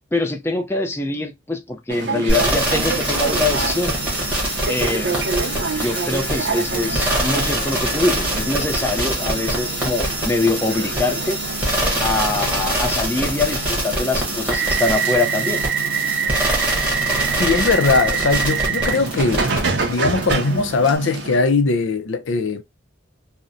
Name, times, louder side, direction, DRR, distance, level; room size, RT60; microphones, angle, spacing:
voice 1, 0.1-4.0 4.7-5.1 5.8-11.4 12.0-15.6, left 2 dB, 15° left, 0.4 m, -23 dB
sound 1, 1.9-21.4, right 5 dB, 60° right, 0.5 m, -26 dB
sound 2, 2.3-19.8 20.2-20.3, right 1 dB, 5° right, 1.0 m, -24 dB
voice 2, 17.4-22.6, left 4 dB, 90° left, 0.5 m, -20 dB
2.8 x 2.0 x 2.4 m
head